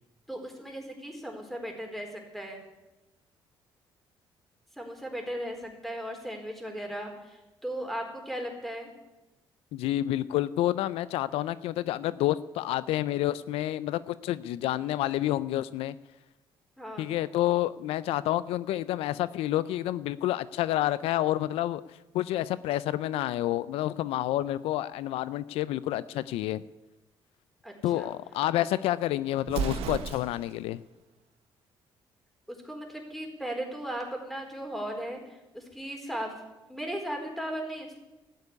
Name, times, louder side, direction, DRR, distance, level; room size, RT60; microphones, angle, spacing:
voice 1, 0.3-2.6 4.8-8.9 14.7-15.0 16.8-17.1 27.6-28.1 32.5-36.3 36.7-38.0, right 1 dB, ahead, 2 dB, 4.4 m, -37 dB
voice 2, 9.7-15.9 17.0-21.8 22.1-26.6 27.8-30.8, left 14 dB, 85° left, 17 dB, 0.4 m, -29 dB
Explosion, 29.4-30.6, right 7 dB, 85° right, 1.0 m, -33 dB
13.0 x 9.3 x 9.7 m, 1.0 s
cardioid pair, 80°, 10 cm